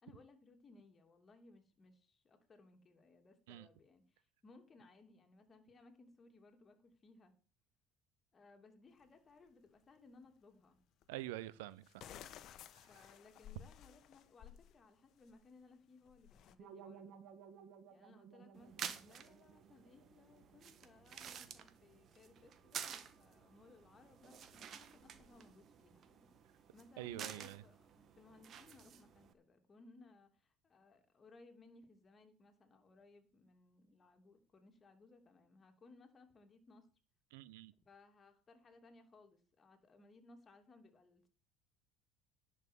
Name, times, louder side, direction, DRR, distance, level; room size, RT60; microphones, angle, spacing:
voice 1, 0.0-7.3 8.3-10.8 12.9-17.1 17.9-36.9 37.8-41.3, left 3 dB, 30° left, 5 dB, 2.9 m, -63 dB
sound 1, 9.0-9.1 11.0-11.1 11.8-14.7 15.1-15.4 16.1-16.6, left 10 dB, 55° left, 1.2 m, -55 dB
voice 2, 11.1-12.1 27.0-27.6 37.3-37.7, right 16 dB, 85° right, 18 dB, 0.7 m, -46 dB
sound 2, 16.6-21.5, right 7 dB, 65° right, 1.9 m, -59 dB
sound 3, 18.5-29.3, right 8 dB, 45° right, 1.5 m, -51 dB
11.0 x 5.9 x 7.7 m, 0.37 s
supercardioid pair, 90°, 0 cm